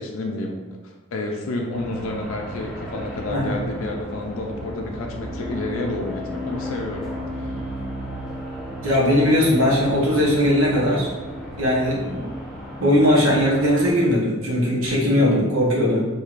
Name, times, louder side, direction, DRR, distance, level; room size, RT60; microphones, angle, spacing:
voice 1, 0.0-7.1, left 2 dB, 70° left, 2 dB, 0.4 m, -30 dB
sound 1, 1.7-13.9, equal, ahead, 0.7 m, -34 dB
voice 2, 8.8-11.1 11.6-12.3 12.8-16.1, left 1 dB, 80° right, -4 dB, 1.0 m, -19 dB
4.4 x 2.7 x 2.4 m, 1.2 s
head